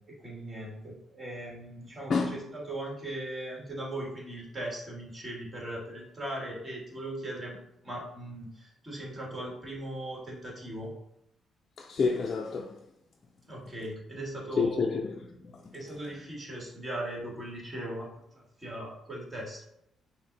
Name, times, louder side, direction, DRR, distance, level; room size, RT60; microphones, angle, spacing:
voice 1, 0.0-2.1 2.5-7.6 7.8-10.9 13.5-14.9 15.7-18.1 18.3-19.6, right 1 dB, 30° right, 1.7 m, -39 dB
voice 2, 11.8-12.8 14.6-15.8, left 4 dB, 45° left, 0.4 m, -29 dB
5.5 x 2.1 x 3.9 m
cardioid pair, 90°, 0 cm